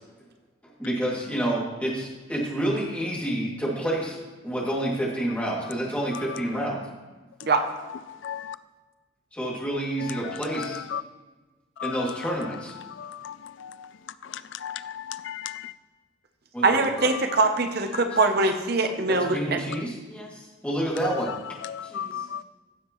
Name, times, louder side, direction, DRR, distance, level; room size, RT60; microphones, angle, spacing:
voice 1, 0.8-4.2 4.4-6.8 9.3-10.8 11.8-12.7 16.5-17.1 17.8-18.3 19.1-21.3 21.8-22.2, right 1 dB, 5° left, 2.4 m, -29 dB
voice 2, 8.2-8.6 10.9-11.0 11.8-11.9 13.0-13.3 13.6-13.7 14.6-15.6 21.7-22.4, left 9 dB, 85° left, 0.4 m, -34 dB
voice 3, 16.6-19.6, right 3 dB, 55° right, 0.8 m, -22 dB
16.0 x 7.3 x 3.1 m
head